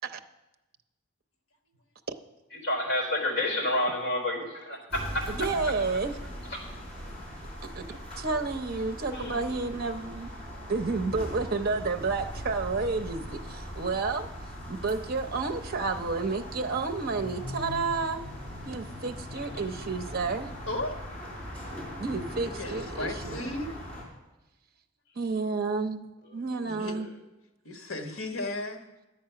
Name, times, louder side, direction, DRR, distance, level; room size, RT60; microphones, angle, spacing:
voice 1, 2.6-5.2 6.5-6.6 8.4-8.5 9.1-9.6 26.5-27.1, left 1 dB, 55° left, 1 dB, 4.1 m, -30 dB
sound 1, 4.9-24.0, equal, 30° left, 4.1 m, -40 dB
voice 2, 5.3-6.1 7.6-10.3 10.7-14.3 14.7-18.2 18.7-20.5 22.0-23.5 25.2-26.1 26.3-27.1, right 4 dB, 45° right, 6 dB, 0.6 m, -31 dB
voice 3, 20.7-21.0 22.3-23.8 26.6-27.0 27.6-28.8, left 2 dB, 75° left, 5 dB, 1.4 m, -35 dB
10.5 x 8.6 x 5.7 m, 1.0 s
head